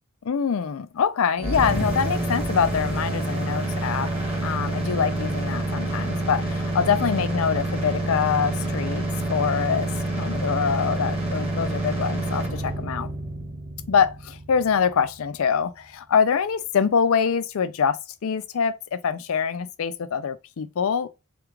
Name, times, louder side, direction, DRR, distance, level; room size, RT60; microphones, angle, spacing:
voice 1, 0.3-4.1 4.4-9.0 9.3-9.9 10.2-13.1 13.9-21.1, left 6 dB, 70° left, 0.4 m, -24 dB
sound 1, 1.4-15.3, right 1 dB, 25° right, 0.9 m, -28 dB
3.4 x 2.3 x 3.0 m
head